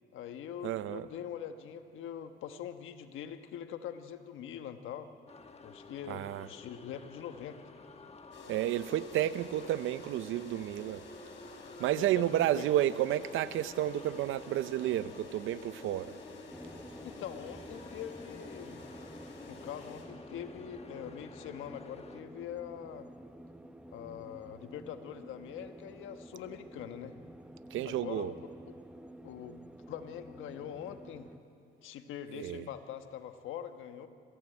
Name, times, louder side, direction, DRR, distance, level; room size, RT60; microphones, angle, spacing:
voice 1, 0.1-5.1 5.6-7.6 12.0-12.6 17.0-18.8 19.5-23.1 23.9-27.2 27.8-28.7 29.2-31.3 31.8-34.1, left 9 dB, 85° left, 8 dB, 1.3 m, -43 dB
voice 2, 0.6-1.1 6.1-6.5 8.5-11.0 11.8-16.2 27.7-28.3 32.3-32.7, right 12 dB, 85° right, 15 dB, 0.7 m, -31 dB
sound 1, 5.3-22.2, left 4 dB, 30° left, 1.4 m, -52 dB
sound 2, 8.3-20.1, left 2 dB, 65° left, 4.1 m, -51 dB
sound 3, 16.5-31.4, right 1 dB, 5° right, 0.8 m, -51 dB
26.0 x 15.5 x 8.9 m, 2.7 s
cardioid pair, 90°, 20 cm